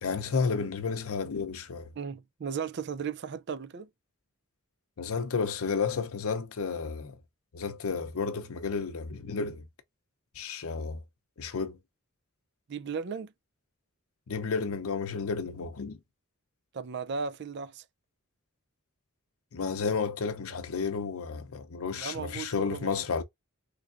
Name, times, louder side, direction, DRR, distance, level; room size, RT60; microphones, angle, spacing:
voice 1, 0.0-1.9 5.0-7.2 7.5-9.6 10.4-11.0 11.4-11.8 14.3-16.0 19.5-23.2, left 5 dB, 80° left, 0.6 m, -32 dB
voice 2, 2.0-3.9 12.7-13.3 16.7-17.8 22.0-23.0, right 6 dB, 50° right, 0.4 m, -36 dB
3.5 x 3.3 x 2.4 m
head